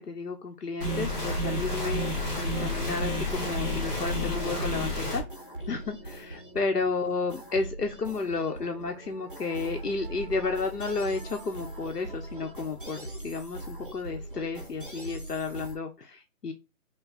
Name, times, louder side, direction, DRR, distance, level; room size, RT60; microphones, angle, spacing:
voice 1, 0.0-5.2 5.7-16.5, left 4 dB, 80° left, 3 dB, 1.0 m, -32 dB
sound 1, 0.8-5.2, left 1 dB, 5° right, 1.0 m, -30 dB
sound 2, 1.5-15.8, right 1 dB, 35° right, 0.5 m, -42 dB
sound 3, 4.3-13.4, right 3 dB, 15° left, 1.8 m, -51 dB
5.3 x 2.2 x 4.2 m, 0.26 s
hypercardioid pair, 170°, 46 cm